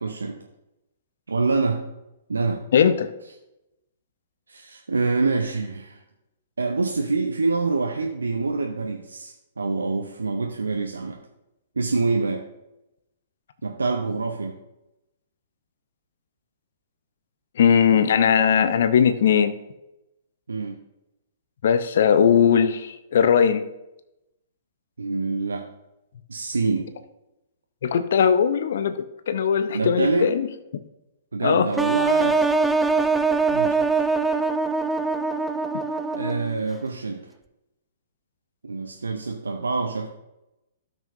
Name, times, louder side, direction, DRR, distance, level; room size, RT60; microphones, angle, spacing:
voice 1, 0.0-0.4 1.3-1.8 2.3-2.6 4.5-6.0 6.6-11.2 11.8-12.4 13.6-14.6 20.5-20.8 25.0-25.6 26.3-26.9 29.7-30.3 31.3-32.5 33.0-33.1 33.5-34.0 36.1-37.3 38.6-40.1, right 3 dB, 80° right, 2 dB, 0.8 m, -26 dB
voice 2, 2.7-3.1 17.6-19.6 21.6-23.7 27.8-30.5 31.4-31.7, left 7 dB, 60° left, 11 dB, 0.6 m, -19 dB
sound 1, 31.8-36.6, right 4 dB, 5° right, 0.4 m, -23 dB
13.0 x 6.3 x 2.6 m, 0.91 s
figure-of-eight pair, 115°, 0 cm